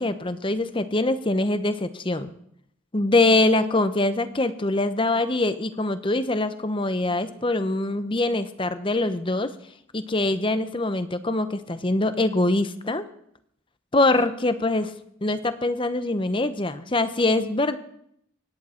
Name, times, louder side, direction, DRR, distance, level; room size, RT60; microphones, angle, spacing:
voice 1, 0.0-2.3 2.9-9.5 9.9-13.0 13.9-14.9 15.2-17.8, left 2 dB, 25° left, 11 dB, 0.8 m, -23 dB
25.0 x 10.5 x 4.4 m, 0.71 s
head